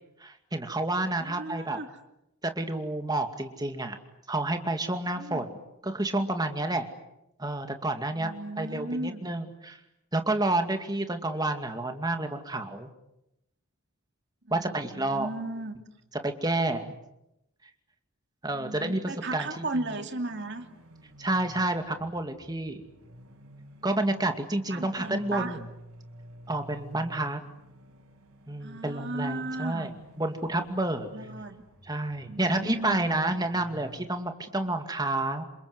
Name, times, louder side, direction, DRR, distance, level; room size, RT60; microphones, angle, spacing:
voice 1, 0.2-1.8 2.4-4.0 4.3-5.6 5.8-6.9 7.4-9.8 10.1-12.9 14.5-15.3 16.2-17.0 18.4-19.6 21.2-22.8 23.8-25.6 26.5-27.4 28.5-29.9 30.2-31.1 31.8-35.4, right 2 dB, 15° right, 6 dB, 2.2 m, -29 dB
voice 2, 1.2-1.9 5.2-5.5 8.2-9.3 14.5-15.7 18.5-20.6 24.7-25.6 28.6-29.9 31.1-31.6 32.3-33.1, right 2 dB, 50° right, 6 dB, 2.7 m, -35 dB
sound 1, 20.3-34.1, equal, 75° right, 5.0 m, -51 dB
28.0 x 27.0 x 7.9 m, 0.87 s
head